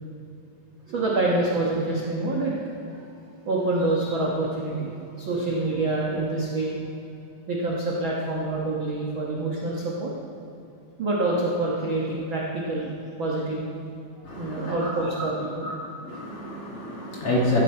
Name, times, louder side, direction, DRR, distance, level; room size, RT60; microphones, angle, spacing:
voice 1, 0.9-3.0 3.5-6.7 7.5-10.1 11.0-12.9 13.2-13.7 14.2-15.7, right 2 dB, 60° right, -4 dB, 1.3 m, -26 dB
voice 2, 14.2-14.9 15.6-15.7 16.0-17.6, left 1 dB, 50° left, -4 dB, 2.2 m, -28 dB
15.5 x 9.1 x 4.4 m, 2.8 s
omnidirectional pair, 4.0 m